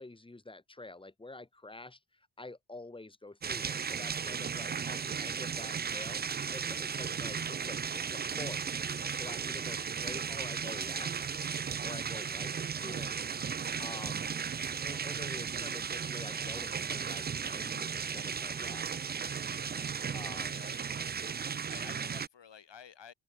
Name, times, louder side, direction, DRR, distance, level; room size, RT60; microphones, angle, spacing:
voice 1, 0.0-2.0 2.4-6.2 6.5-8.6 9.1-11.1 11.8-13.2 13.8-14.3 14.8-19.0 20.1-20.6, left 2 dB, 10° left, 1.1 m, -47 dB
sound 1, 3.4-22.3, right 6 dB, 25° right, 0.3 m, -35 dB
voice 2, 13.4-13.8 20.5-21.2 21.7-23.1, left 7 dB, 75° left, 4.9 m, -53 dB
open air
cardioid pair, 85°, 43 cm